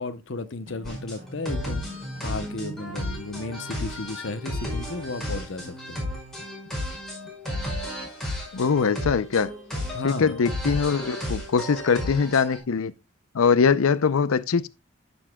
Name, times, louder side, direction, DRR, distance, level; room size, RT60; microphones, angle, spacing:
voice 1, 0.0-1.9 2.2-6.0 9.9-10.3, left 3 dB, 60° left, 0.8 m, -34 dB
sound 1, 0.7-8.1, right 3 dB, 35° right, 3.2 m, -47 dB
sound 2, 0.8-12.6, left 1 dB, ahead, 5.1 m, -33 dB
voice 2, 8.5-9.5 10.0-12.9 13.3-14.7, left 5 dB, 90° left, 0.5 m, -22 dB
14.5 x 7.1 x 2.2 m
head